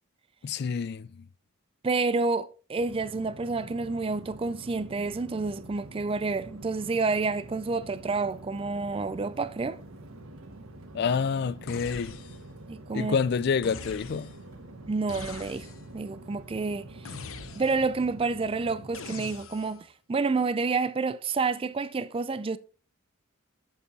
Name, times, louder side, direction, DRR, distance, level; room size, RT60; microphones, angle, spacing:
voice 1, 0.4-1.2 10.9-12.2 12.9-14.3, left 6 dB, 50° left, 0.3 m, -28 dB
voice 2, 1.8-9.8 12.7-13.2 14.9-17.1 17.5-22.6, right 4 dB, 25° right, 0.4 m, -29 dB
sound 1, 2.8-19.1, right 2 dB, 80° right, 1.5 m, -46 dB
sound 2, 11.7-12.6 13.6-14.5 15.1-16.0 17.1-18.0 18.9-19.9, left 5 dB, 75° left, 0.8 m, -43 dB
8.4 x 6.8 x 4.1 m
head